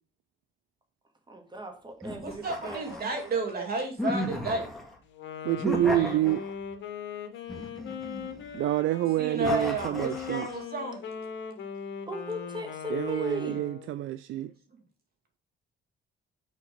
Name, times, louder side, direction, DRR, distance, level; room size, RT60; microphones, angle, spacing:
voice 1, 1.3-2.9 10.9-11.1 12.1-13.6, left 1 dB, 20° right, 2.1 m, -37 dB
sound 1, 2.0-3.4 4.0-5.0 5.6-6.7 7.5-8.6 9.4-10.6, left 1 dB, ahead, 1.8 m, -35 dB
voice 2, 2.2-4.7 5.9-6.3 9.2-11.0, right 2 dB, 50° right, 2.5 m, -32 dB
Wind instrument woodwind instrument, 5.1-14.0, left 7 dB, 70° left, 1.3 m, -40 dB
voice 3, 5.4-6.4 8.5-10.5 12.9-14.5, right 13 dB, 80° right, 0.4 m, -28 dB
6.4 x 4.2 x 5.1 m
cardioid pair, 90°, 20 cm